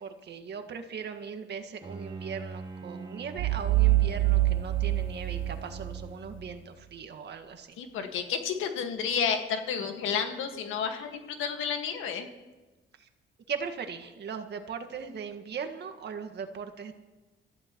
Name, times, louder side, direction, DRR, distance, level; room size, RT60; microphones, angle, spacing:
voice 1, 0.0-7.8 13.5-16.9, right 6 dB, 60° right, 6 dB, 1.8 m, -39 dB
Bowed string instrument, 1.8-6.8, right 1 dB, 20° right, 2.2 m, -43 dB
sound 1, 3.4-6.1, right 17 dB, 80° right, 0.6 m, -25 dB
voice 2, 7.8-12.3, left 7 dB, 90° left, 5 dB, 1.8 m, -31 dB
24.5 x 14.5 x 3.1 m, 1.2 s
cardioid pair, 90°, 20 cm